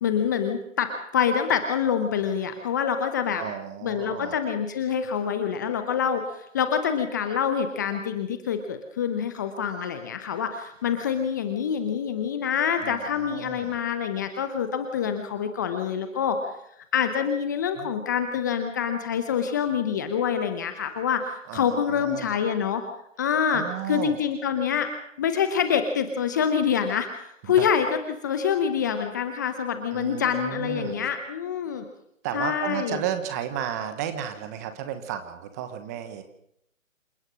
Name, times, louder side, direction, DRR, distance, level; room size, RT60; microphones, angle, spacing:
voice 1, 0.0-3.4 3.8-16.4 16.8-22.8 23.2-24.9 25.2-31.8 32.3-33.0, left 7 dB, 15° left, 8 dB, 0.8 m, -26 dB
voice 2, 3.4-4.3 12.8-13.8 17.8-17.9 21.5-22.4 23.5-24.2 27.6-27.7 29.9-31.0 32.2-36.2, right 9 dB, 15° right, 9 dB, 1.0 m, -33 dB
27.5 x 16.0 x 6.3 m, 0.75 s
figure-of-eight pair, 150°, 39 cm